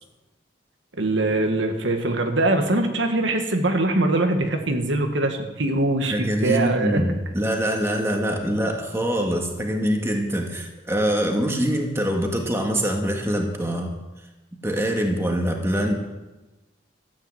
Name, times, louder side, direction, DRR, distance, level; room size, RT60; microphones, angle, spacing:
voice 1, 1.0-7.0, right 2 dB, 85° right, 4 dB, 1.7 m, -22 dB
voice 2, 6.1-13.9 14.6-15.9, equal, 15° right, 1 dB, 1.8 m, -24 dB
13.5 x 9.1 x 7.9 m, 1.1 s
head